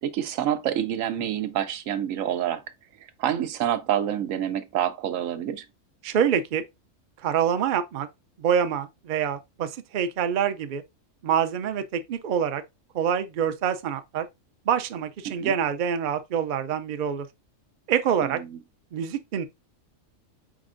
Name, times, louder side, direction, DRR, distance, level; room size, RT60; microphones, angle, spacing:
voice 1, 0.0-2.6 3.2-5.6 15.3-15.5 18.2-18.6, right 10 dB, 90° right, 1.1 m, -27 dB
voice 2, 6.0-6.6 7.2-8.1 8.4-10.8 11.2-12.6 12.9-14.3 14.7-17.3 17.9-18.4 18.9-19.5, right 8 dB, 55° right, 0.5 m, -26 dB
4.9 x 4.3 x 2.5 m
omnidirectional pair, 1.3 m